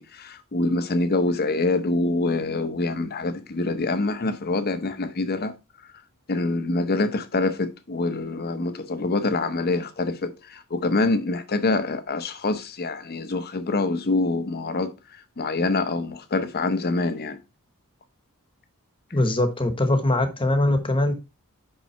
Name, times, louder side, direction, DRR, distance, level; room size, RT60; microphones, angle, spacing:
voice 1, 0.0-5.5 6.3-14.9 15.4-17.4, left 2 dB, 45° left, 0.8 m, -25 dB
voice 2, 19.1-21.1, left 1 dB, 25° left, 1.1 m, -22 dB
5.6 x 5.4 x 4.3 m
head